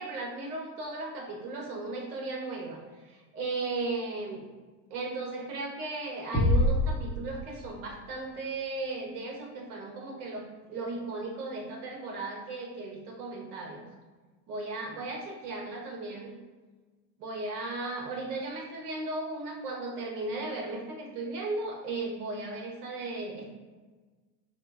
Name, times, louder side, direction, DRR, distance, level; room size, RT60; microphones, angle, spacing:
voice 1, 0.0-4.4 4.9-13.8 14.5-16.3 17.2-23.5, right 2 dB, 80° right, 0 dB, 1.2 m, -36 dB
sound 1, 6.3-8.1, left 1 dB, 10° right, 0.9 m, -26 dB
4.3 x 2.4 x 4.6 m, 1.3 s
supercardioid pair, 155°, 45 cm